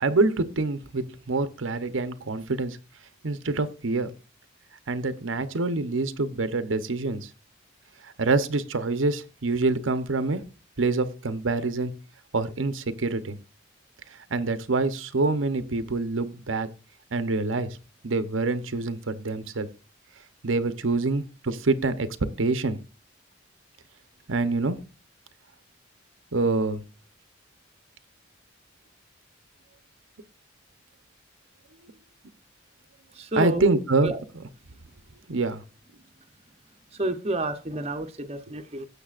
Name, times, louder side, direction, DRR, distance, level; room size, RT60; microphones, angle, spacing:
voice 1, 0.0-2.8 3.2-4.1 4.9-7.3 8.2-10.4 10.8-11.9 12.3-13.4 14.3-16.7 17.1-17.8 18.0-19.7 20.4-22.1 22.4-22.8 24.3-24.8 26.3-26.8 33.4-34.1 35.3-35.6, right 3 dB, 75° right, 11 dB, 0.8 m, -26 dB
voice 2, 33.1-34.2 36.9-38.9, right 1 dB, 30° right, 6 dB, 0.8 m, -30 dB
17.0 x 6.6 x 2.5 m, 0.34 s
head